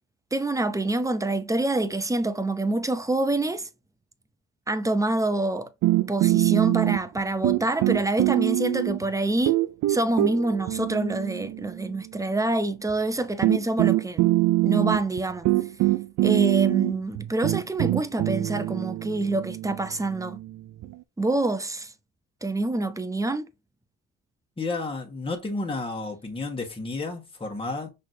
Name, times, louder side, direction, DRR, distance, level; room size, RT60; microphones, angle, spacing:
voice 1, 0.3-3.7 4.7-5.7 6.1-9.6 9.9-14.3 14.6-15.5 16.2-20.4 21.2-21.9 22.4-23.5, right 2 dB, 10° right, 0.6 m, -26 dB
sound 1, 5.8-7.2 7.4-9.1 9.5-11.9 12.9-13.0 13.4-20.9, right 17 dB, 75° right, 0.5 m, -24 dB
voice 2, 24.6-27.9, left 3 dB, 20° left, 1.5 m, -31 dB
6.0 x 3.2 x 2.7 m
cardioid pair, 90°, 30 cm